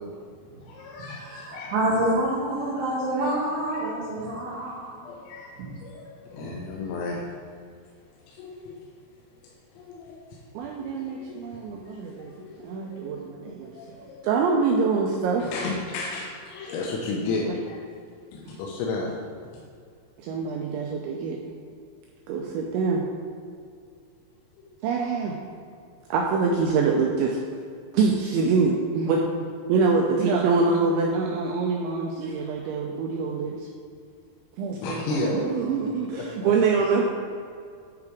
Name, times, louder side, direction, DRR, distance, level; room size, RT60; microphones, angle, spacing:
voice 1, 0.6-1.7 2.8-2.9 3.7-3.9 5.0-5.6 5.8-7.2 8.3-8.8 9.4-10.4 10.7-13.1 13.6-14.3 15.4-17.8 18.3-19.2 19.5-19.6 24.5-24.7 32.6-32.8 34.8-35.5 35.8-36.5, left 3 dB, 90° left, -2 dB, 3.6 m, -34 dB
voice 2, 1.2-5.1 6.4-6.5, right 1 dB, 65° right, -9 dB, 3.8 m, -27 dB
voice 3, 10.5-12.3 12.6-14.0 14.2-15.5 17.5-17.6 20.2-21.4 22.3-23.0 24.8-25.4 26.1-27.4 27.9-29.2 29.7-33.5 34.6-37.1, right 4 dB, 85° right, 0 dB, 2.6 m, -25 dB
10.0 x 4.8 x 4.8 m, 2.3 s
omnidirectional pair, 5.9 m